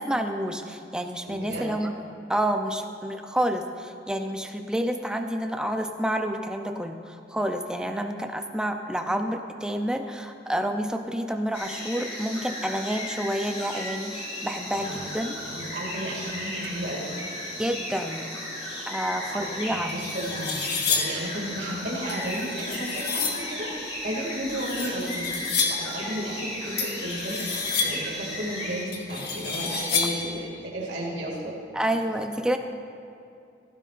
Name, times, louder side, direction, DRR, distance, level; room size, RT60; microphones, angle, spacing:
voice 1, 0.0-2.0 2.3-15.4 17.6-18.3 18.9-19.9 31.7-32.6, right 1 dB, 5° right, 5 dB, 0.5 m, -29 dB
voice 2, 1.3-1.7 14.7-15.0 15.4-17.1 19.1-31.6, right 1 dB, 60° right, -5 dB, 2.4 m, -33 dB
sound 1, 11.5-28.8, left 1 dB, 35° left, 3.0 m, -35 dB
sound 2, 19.4-19.5 19.9-21.3 22.1-23.5 24.5-26.0 26.8-28.1 28.9-30.3, left 5 dB, 55° left, 1.4 m, -29 dB
16.0 x 14.5 x 2.6 m, 2.5 s
head